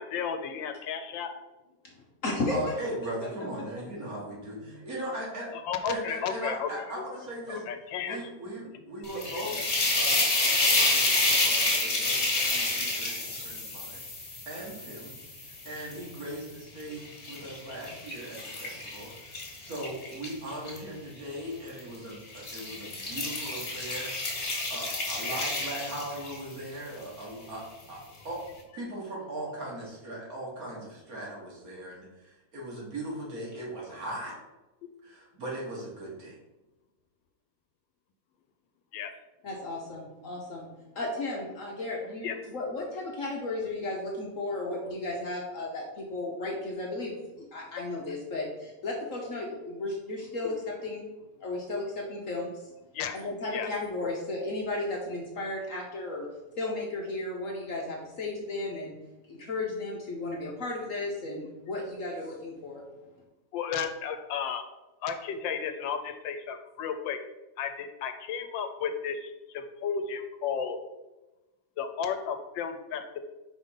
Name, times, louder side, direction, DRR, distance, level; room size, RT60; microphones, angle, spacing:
voice 1, 0.0-1.3 5.5-6.7 7.5-8.2 8.7-8.8 12.8-12.9 38.9-39.1 42.2-42.4 50.4-50.5 52.9-53.1 53.5-53.7 63.5-64.6 65.0-67.2 67.6-70.8 71.8-73.2, left 7 dB, 80° left, 8 dB, 1.3 m, -33 dB
voice 2, 1.9-3.5 4.6-4.7 39.4-40.7 40.9-47.2 47.5-51.0 51.4-52.5 53.1-56.3 56.6-59.0 59.3-62.8, left 2 dB, 55° left, -2 dB, 1.0 m, -34 dB
voice 3, 2.5-5.5 5.9-7.6 8.0-9.6 10.0-14.0 14.5-15.2 15.7-19.3 19.6-24.1 24.7-28.4 28.7-34.3 35.0-36.4, right 1 dB, 50° right, -3 dB, 1.9 m, -39 dB
sound 1, 9.0-16.3 16.8-20.8 21.7-22.0 22.3-26.5, left 2 dB, 40° left, 1.8 m, -29 dB
5.0 x 3.6 x 5.5 m, 1.0 s
omnidirectional pair, 2.0 m